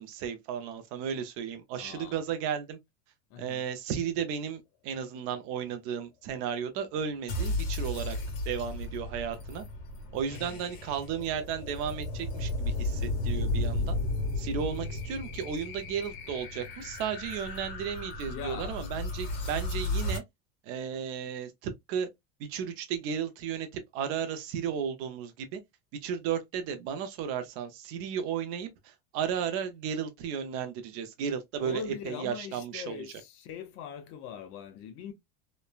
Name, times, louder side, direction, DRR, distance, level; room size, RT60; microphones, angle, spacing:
voice 1, 0.0-2.8 3.4-8.2 8.5-9.6 10.1-14.0 14.4-20.2 20.6-22.1 22.4-25.6 26.0-33.1, right 7 dB, 45° right, 0.5 m, -34 dB
voice 2, 1.8-2.2 3.3-3.6 10.3-10.6 18.3-18.8 31.6-35.1, left 7 dB, 45° left, 0.5 m, -41 dB
sound 1, 7.3-20.2, left 2 dB, 75° left, 1.4 m, -34 dB
3.1 x 2.1 x 2.2 m
cardioid pair, 170°, 31 cm